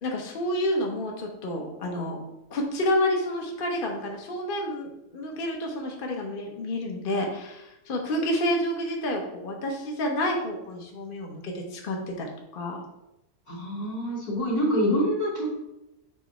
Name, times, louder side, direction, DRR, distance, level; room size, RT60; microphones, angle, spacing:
voice 1, 0.0-2.2 2.5-12.3 12.5-12.8, left 1 dB, 40° left, 1 dB, 0.8 m, -29 dB
voice 2, 13.5-15.6, equal, 60° left, -5 dB, 2.4 m, -26 dB
7.1 x 3.5 x 4.2 m, 0.90 s
omnidirectional pair, 1.7 m